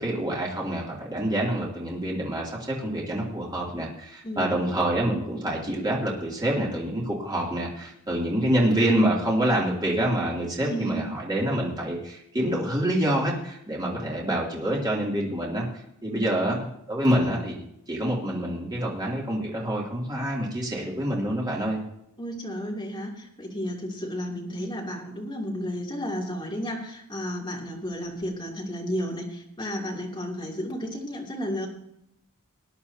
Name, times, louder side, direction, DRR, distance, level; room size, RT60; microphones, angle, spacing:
voice 1, 0.0-15.6 16.0-21.8, right 1 dB, 20° right, -4 dB, 2.9 m, -26 dB
voice 2, 4.2-4.5 10.6-11.0 16.1-16.3 22.2-31.7, equal, 20° left, -2 dB, 2.9 m, -32 dB
20.0 x 10.5 x 2.9 m, 0.76 s
head